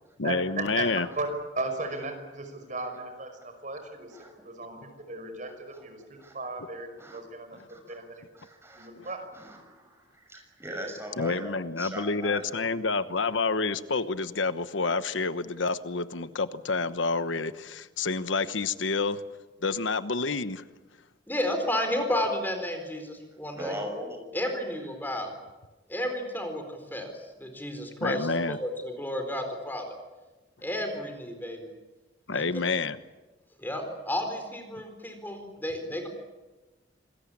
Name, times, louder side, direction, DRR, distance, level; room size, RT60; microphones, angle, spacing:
voice 1, 0.2-1.1 9.0-9.1 11.2-19.2 19.6-20.6 28.0-28.6 32.3-33.0, left 4 dB, 90° left, 12 dB, 1.1 m, -28 dB
voice 2, 1.6-4.2 4.4-4.8 5.1-6.0 6.3-7.6 7.9-8.2 8.8-9.2, right 3 dB, 40° right, 6 dB, 5.6 m, -36 dB
voice 3, 5.7-6.3 7.0-7.2 7.7-8.0 8.3-12.9 23.5-24.3, equal, 15° right, 4 dB, 6.4 m, -41 dB
voice 4, 21.3-23.7 24.3-25.3 25.9-29.9 30.6-31.7 32.3-32.4 33.6-36.1, left 1 dB, 10° left, 5 dB, 4.4 m, -32 dB
27.5 x 21.0 x 8.7 m, 1.2 s
head